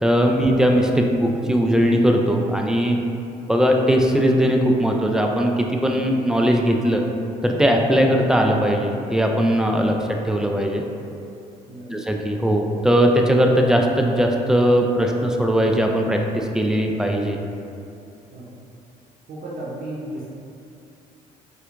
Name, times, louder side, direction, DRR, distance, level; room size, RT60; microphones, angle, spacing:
voice 1, 0.0-3.0 3.5-7.0 7.4-10.0 10.2-10.8 11.9-17.4, equal, 5° right, 1 dB, 0.3 m, -19 dB
voice 2, 19.3-20.3, right 1 dB, 55° right, -8 dB, 0.7 m, -35 dB
4.3 x 2.2 x 2.4 m, 2.7 s
supercardioid pair, 60°, 17 cm